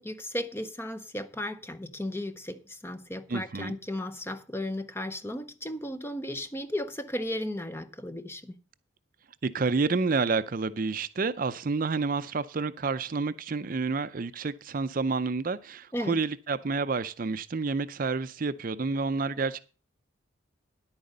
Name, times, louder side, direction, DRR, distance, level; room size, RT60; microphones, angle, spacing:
voice 1, 0.0-8.6 15.9-16.2, left 1 dB, 10° left, 0.7 m, -35 dB
voice 2, 3.3-3.7 9.4-19.6, right 4 dB, 40° right, 0.5 m, -29 dB
10.5 x 8.9 x 5.4 m
head